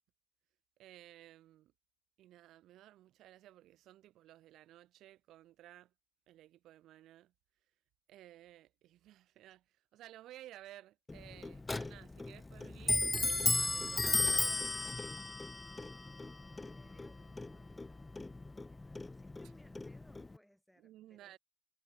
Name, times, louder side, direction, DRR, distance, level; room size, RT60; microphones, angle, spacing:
voice 1, 0.8-1.7 2.2-5.9 6.3-7.3 8.1-9.6 9.9-15.2 20.8-21.4, right 14 dB, 85° right, 0.6 m, -56 dB
Clock, 11.1-20.4, left 2 dB, 20° left, 0.3 m, -36 dB
voice 2, 16.6-21.4, equal, ahead, 4.7 m, -67 dB
cardioid pair, 90°, 0 cm